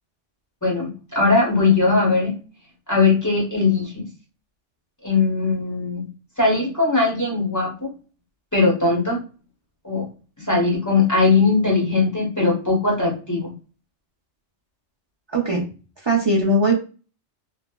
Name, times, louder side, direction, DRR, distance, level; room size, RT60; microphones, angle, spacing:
voice 1, 0.6-2.3 2.9-4.1 5.0-6.0 6.4-7.9 8.5-9.2 9.8-10.1 10.4-13.5, left 3 dB, 20° left, -3 dB, 0.7 m, -20 dB
voice 2, 15.3-15.7 16.0-16.8, right 1 dB, 40° right, -3 dB, 0.4 m, -19 dB
3.2 x 2.0 x 2.2 m, 0.34 s
omnidirectional pair, 1.2 m